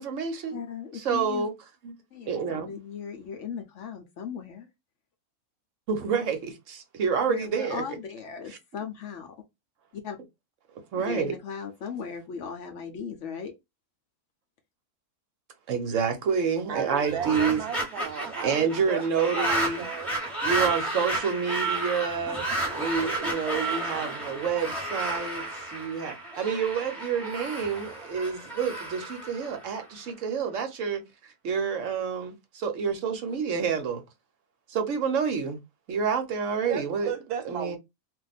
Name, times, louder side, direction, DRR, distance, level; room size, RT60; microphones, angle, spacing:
voice 1, 0.0-0.6 0.9-1.5 1.8-1.9 2.3-2.7 5.9-7.8 10.9-11.3 15.7-17.6 18.4-19.9 20.4-22.4 22.8-34.0 34.7-35.6 35.9-37.1 37.4-37.8, right 6 dB, 65° right, 0.9 m, -28 dB
voice 2, 0.5-1.5 2.1-4.7 7.3-9.3 9.9-10.2 11.0-13.5, left 7 dB, 65° left, 0.8 m, -37 dB
voice 3, 16.7-19.0 19.3-20.1 20.6-20.7 36.7-37.8, right 8 dB, 90° right, 1.2 m, -35 dB
sound 1, 16.9-30.1, right 2 dB, ahead, 0.8 m, -32 dB
2.5 x 2.2 x 4.0 m
omnidirectional pair, 1.6 m